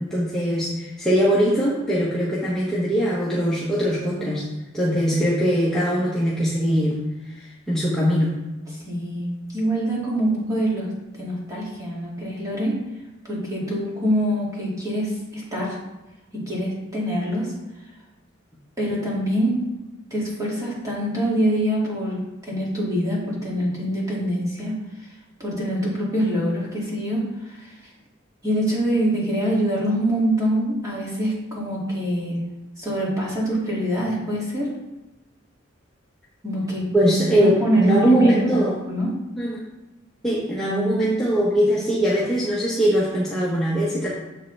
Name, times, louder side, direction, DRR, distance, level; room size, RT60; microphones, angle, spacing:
voice 1, 0.0-4.5 4.7-7.0 7.4-8.4 36.9-38.7 39.4-39.6 40.2-44.1, equal, 5° left, -8 dB, 1.0 m, -21 dB
voice 2, 8.7-12.8 13.2-15.8 16.3-17.5 18.8-19.6 20.1-25.1 25.4-27.7 28.4-32.4 32.8-34.8 36.4-36.9 37.4-38.6 38.9-39.1, equal, 15° right, -5 dB, 2.2 m, -25 dB
7.2 x 6.7 x 3.3 m, 1.0 s
head